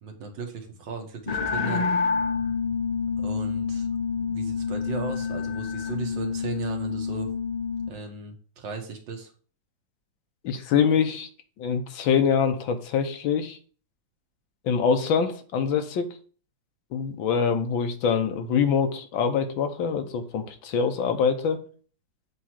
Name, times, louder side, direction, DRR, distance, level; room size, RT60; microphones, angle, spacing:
voice 1, 0.0-1.9 3.2-3.9 4.2-7.3 7.9-9.3, right 5 dB, 70° right, 4 dB, 1.9 m, -36 dB
sound 1, 1.3-7.9, left 5 dB, 60° left, 0.4 m, -28 dB
voice 2, 10.4-11.3 11.6-13.6 14.6-16.2 16.9-21.6, left 6 dB, 85° left, 7 dB, 1.7 m, -24 dB
7.5 x 3.1 x 5.8 m, 0.41 s
omnidirectional pair, 2.1 m